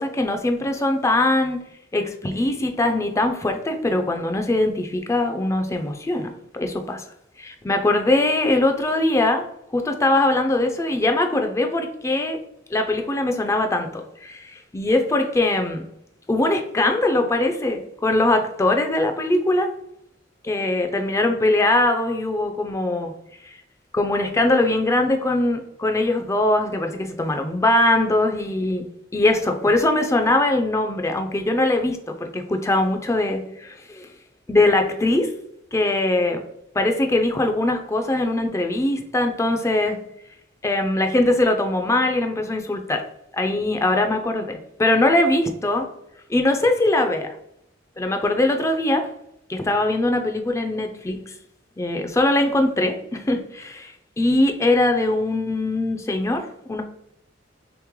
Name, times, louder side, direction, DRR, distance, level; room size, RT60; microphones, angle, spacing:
voice 1, 0.0-1.6 1.9-7.0 7.4-9.5 9.7-12.4 12.7-15.8 16.3-19.7 20.4-23.1 23.5-23.6 23.9-28.9 29.1-34.1 34.5-35.3 35.7-36.4 36.7-40.0 40.6-43.0 43.3-45.9 46.3-47.4 48.0-49.1 49.5-51.3 51.8-56.8, left 2 dB, 15° left, 5 dB, 0.4 m, -21 dB
3.3 x 3.0 x 3.6 m, 0.76 s
head